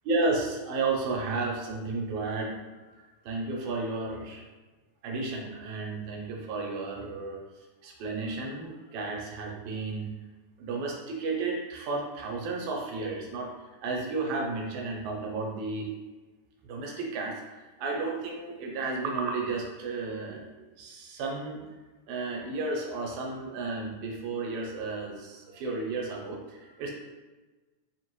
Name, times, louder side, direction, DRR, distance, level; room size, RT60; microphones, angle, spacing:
voice 1, 0.0-4.4 5.0-10.1 10.6-15.9 16.6-21.6 22.1-26.9, right 3 dB, 75° right, -1 dB, 2.0 m, -33 dB
5.0 x 2.9 x 3.0 m, 1.2 s
omnidirectional pair, 3.5 m